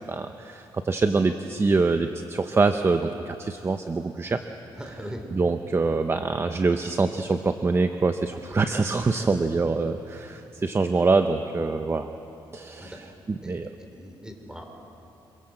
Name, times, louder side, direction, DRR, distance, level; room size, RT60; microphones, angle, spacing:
voice 1, 0.1-4.4 5.3-12.1 12.5-13.0 13.3-13.7, right 3 dB, 25° right, 8 dB, 0.9 m, -24 dB
voice 2, 4.7-5.3 12.8-13.0 13.4-14.6, equal, 5° right, 4 dB, 3.5 m, -40 dB
26.0 x 23.5 x 7.8 m, 3.0 s
cardioid pair, 115°, 9 cm